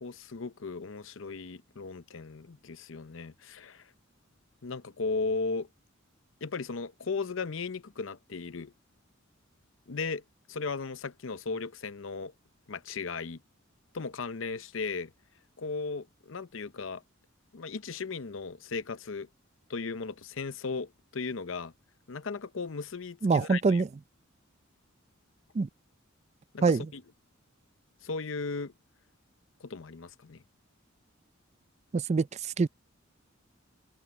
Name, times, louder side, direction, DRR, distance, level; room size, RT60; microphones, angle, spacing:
voice 1, 0.0-3.9 4.6-5.7 6.4-8.7 9.9-10.2 10.5-12.3 12.7-13.4 13.9-15.1 15.6-17.0 17.5-19.3 19.7-21.7 22.1-23.8 26.5-26.6 26.9-27.0 28.0-28.7 29.6-30.4, left 4 dB, 70° left, 0.7 m, -36 dB
voice 2, 23.2-23.9 25.5-25.7 26.6-26.9 31.9-32.7, right 4 dB, 35° right, 0.4 m, -25 dB
head